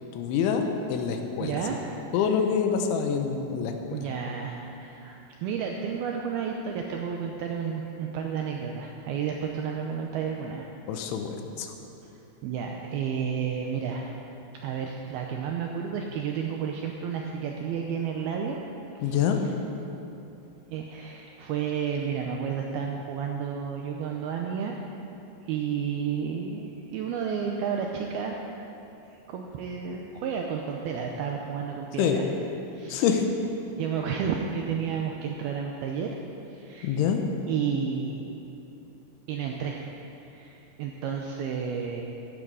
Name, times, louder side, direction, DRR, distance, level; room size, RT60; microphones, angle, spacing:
voice 1, 0.1-1.6 2.1-4.0 10.9-11.7 19.0-19.4 32.0-32.2 32.9-33.3 36.8-37.2, left 7 dB, 85° left, 5 dB, 3.4 m, -26 dB
voice 2, 1.4-1.8 3.9-10.7 12.4-14.1 14.6-18.6 19.0-19.2 20.7-24.7 25.5-28.4 29.3-32.2 32.7-33.0 33.8-36.1 36.5-37.0 37.5-38.3 39.3-39.8 40.2-42.0, right 7 dB, 80° right, 1 dB, 2.2 m, -31 dB
15.0 x 12.0 x 4.9 m, 2.9 s
omnidirectional pair, 5.3 m